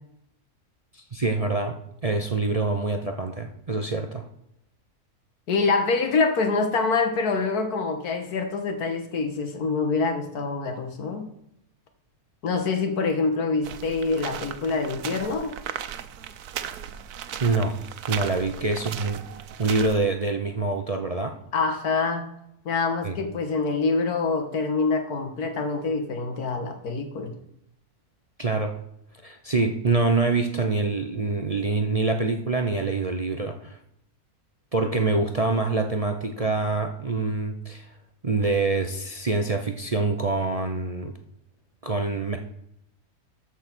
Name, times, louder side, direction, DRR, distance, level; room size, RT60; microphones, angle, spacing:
voice 1, 0.9-1.8 2.0-4.3 17.4-17.8 18.1-19.2 19.6-21.4 23.0-23.2 28.4-28.8 29.2-33.8 34.7-37.9 38.2-41.1 41.8-42.4, right 3 dB, 35° right, 5 dB, 0.6 m, -25 dB
voice 2, 5.5-11.3 12.4-15.6 18.3-18.4 21.5-22.3 22.7-27.4, left 4 dB, 90° left, 6 dB, 1.9 m, -25 dB
sound 1, 13.6-20.0, right 9 dB, 85° right, 1.2 m, -36 dB
13.0 x 4.8 x 6.0 m, 0.76 s
omnidirectional pair, 1.6 m